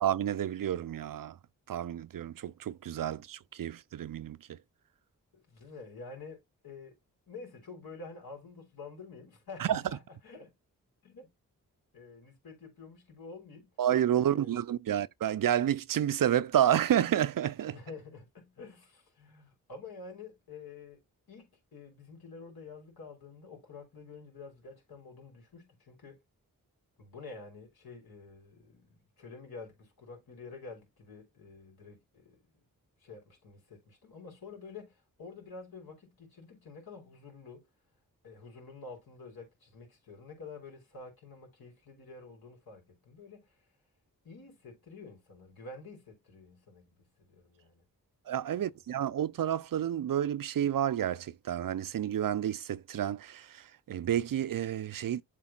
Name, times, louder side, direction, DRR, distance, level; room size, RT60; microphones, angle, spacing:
voice 1, 0.0-1.3 1.7-4.6 9.6-9.8 13.8-17.8 48.3-55.2, right 10 dB, 65° right, 0.6 m, -30 dB
voice 2, 5.3-7.0 7.3-10.5 11.0-11.3 11.9-13.7 14.2-14.5 17.7-21.0 21.3-26.2 27.0-32.6 33.0-37.7 38.2-43.6 44.2-47.8, left 4 dB, 75° left, 3.9 m, -49 dB
7.5 x 3.7 x 4.0 m
cardioid pair, 40°, 36 cm